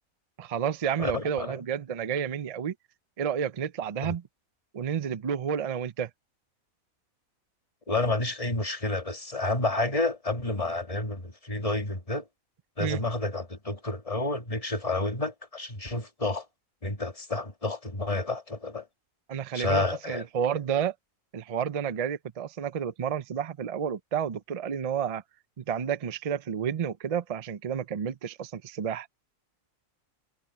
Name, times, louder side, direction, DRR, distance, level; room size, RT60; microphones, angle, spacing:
voice 1, 0.4-2.7 3.2-4.2 4.7-6.1 12.8-13.0 19.3-20.9 21.3-25.2 25.6-29.1, right 8 dB, 60° right, 0.3 m, -30 dB
voice 2, 1.0-1.6 4.0-4.1 7.9-12.2 12.8-16.4 16.8-18.9 19.5-20.2, left 2 dB, 25° left, 1.8 m, -30 dB
omnidirectional pair, 1.5 m